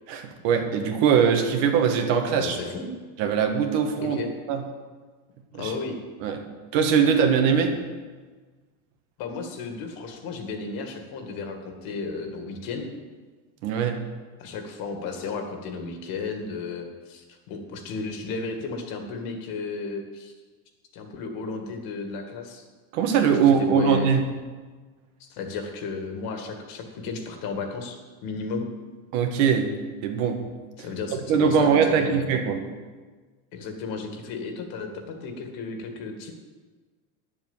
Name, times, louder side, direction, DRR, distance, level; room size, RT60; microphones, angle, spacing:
voice 1, 0.1-2.6 3.2-4.2 4.5-4.6 5.5-5.7 6.2-6.4 6.7-7.7 13.6-14.0 22.9-24.2 29.1-29.7 30.0-30.4 31.3-32.6, right 7 dB, 70° right, 4 dB, 1.8 m, -21 dB
voice 2, 2.3-2.9 4.0-4.3 5.6-6.0 9.2-12.9 14.4-20.3 20.9-22.6 23.4-24.1 25.2-28.7 30.8-32.3 33.5-36.3, left 4 dB, 60° left, 4 dB, 2.1 m, -34 dB
10.0 x 7.4 x 7.3 m, 1.4 s
cardioid pair, 140°, 40 cm